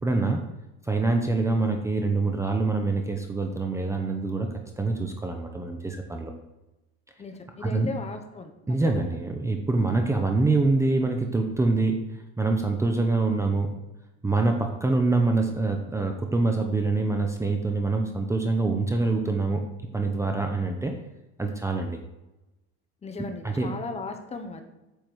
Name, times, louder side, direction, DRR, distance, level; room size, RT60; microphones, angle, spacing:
voice 1, 0.0-0.4 0.8-4.5 4.8-6.3 7.6-7.9 8.7-12.0 12.4-13.7 14.2-19.6 19.9-20.9 21.4-22.0 23.4-23.7, right 3 dB, 10° right, 3 dB, 0.8 m, -25 dB
voice 2, 7.2-8.5 9.0-9.1 23.0-24.6, left 4 dB, 20° left, 6 dB, 1.1 m, -37 dB
9.2 x 7.2 x 4.7 m, 0.99 s
cardioid pair, 150°, 30 cm